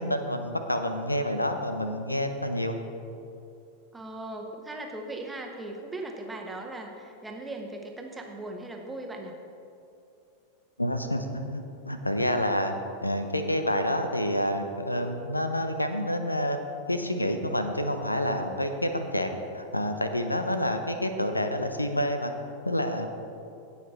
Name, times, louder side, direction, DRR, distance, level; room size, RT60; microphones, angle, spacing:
voice 1, 0.0-2.8 10.8-12.8 13.0-16.6 16.9-22.3 22.6-23.1, left 1 dB, 85° left, 7 dB, 0.8 m, -28 dB
voice 2, 3.9-9.3, right 2 dB, 10° right, 1 dB, 1.2 m, -38 dB
17.0 x 5.9 x 4.3 m, 2.6 s
figure-of-eight pair, 90°, 0 cm